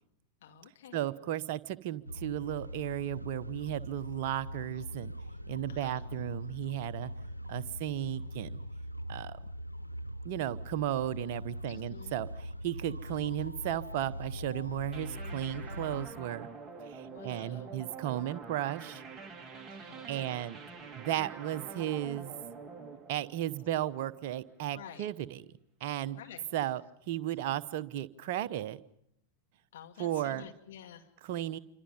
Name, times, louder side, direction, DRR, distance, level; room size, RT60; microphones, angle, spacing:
voice 1, 0.4-1.0 5.7-6.0 11.7-12.1 17.0-17.7 19.8-20.5 24.7-25.1 26.0-26.4 29.7-31.1, left 10 dB, 60° left, 4 dB, 2.6 m, -50 dB
voice 2, 0.9-5.1 5.5-7.1 7.5-8.6 9.1-9.4 10.2-12.3 12.6-16.5 16.8-19.0 19.7-20.6 21.0-22.3 23.1-25.4 25.8-26.2 26.5-26.8 27.1-28.8 30.0-30.4 31.3-31.6, right 12 dB, 50° right, 14 dB, 0.9 m, -35 dB
sound 1, 2.1-16.1, equal, 90° right, 0.9 m, -41 dB
sound 2, 14.9-24.3, right 4 dB, 15° right, 2.7 m, -47 dB
27.5 x 25.5 x 5.4 m, 0.75 s
figure-of-eight pair, 90°, 0 cm